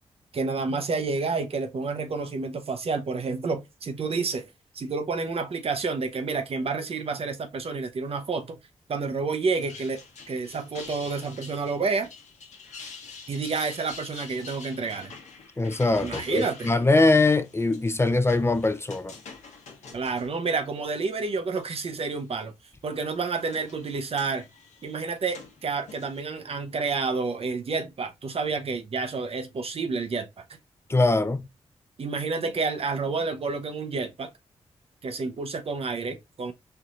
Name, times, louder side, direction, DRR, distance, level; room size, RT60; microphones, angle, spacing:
voice 1, 0.3-4.5 4.7-8.6 8.9-10.0 10.3-12.1 13.3-15.1 16.0-16.7 19.9-22.5 22.8-24.5 24.8-30.3 32.0-34.3 35.0-36.5, right 4 dB, 55° right, 0.7 m, -29 dB
sound 1, 9.4-21.2 21.6-22.2 23.0-26.2, left 5 dB, 80° left, 1.0 m, -46 dB
voice 2, 15.6-19.1 30.9-31.5, left 2 dB, 20° left, 0.5 m, -22 dB
4.5 x 2.6 x 2.4 m
supercardioid pair, 45°, 12 cm